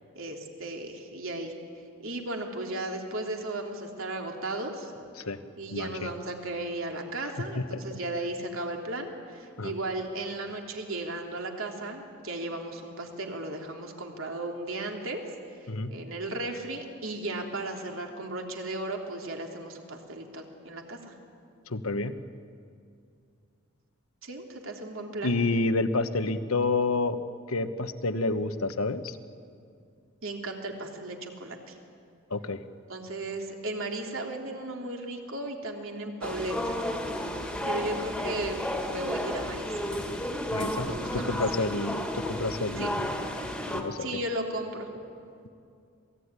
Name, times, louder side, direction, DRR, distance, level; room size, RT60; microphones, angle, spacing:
voice 1, 0.1-1.5 2.0-4.9 5.6-15.2 15.6-21.1 24.2-25.3 30.2-31.8 32.9-36.7 37.7-39.7 40.8-41.7 42.8-42.9 44.0-44.9, right 2 dB, 70° right, 2 dB, 3.2 m, -35 dB
voice 2, 5.7-6.1 7.5-8.0 9.6-9.7 15.7-15.9 21.7-22.1 25.2-27.2 27.5-29.2 32.3-32.6 40.5-43.1 43.7-44.1, left 3 dB, 90° left, 10 dB, 1.2 m, -29 dB
sound 1, 36.2-43.8, left 1 dB, 5° left, 2.0 m, -32 dB
27.0 x 18.0 x 9.8 m, 2.4 s
head